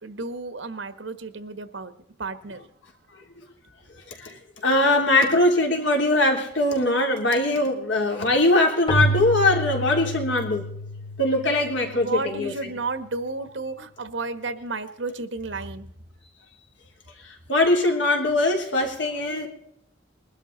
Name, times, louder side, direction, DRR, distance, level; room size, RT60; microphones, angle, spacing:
voice 1, 0.0-1.9 2.2-2.6 11.9-15.9, right 3 dB, 80° right, 10 dB, 1.3 m, -32 dB
voice 2, 4.2-10.6 11.2-12.7 17.2-19.5, left 2 dB, 75° left, 2 dB, 3.2 m, -21 dB
Keyboard (musical), 8.9-12.4, right 2 dB, 25° left, 1.0 m, -29 dB
21.5 x 12.0 x 4.0 m, 0.75 s
head